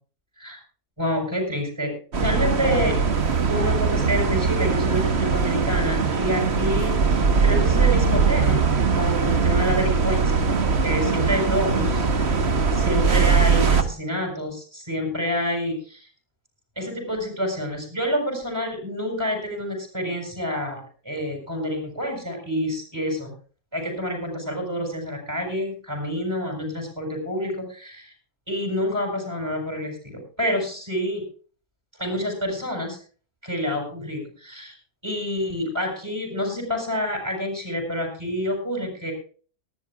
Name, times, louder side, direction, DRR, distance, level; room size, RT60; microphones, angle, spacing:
voice 1, 1.0-1.9 2.2-3.0 3.5-8.6 8.9-10.5 10.8-16.1 16.7-23.3 23.7-28.1 28.5-31.2 32.0-33.0 33.4-34.8 35.0-39.1, equal, 15° right, 1 dB, 6.6 m, -28 dB
sound 1, 2.1-13.8, right 5 dB, 45° right, 1.6 m, -21 dB
20.0 x 15.5 x 2.4 m, 0.40 s
omnidirectional pair, 1.6 m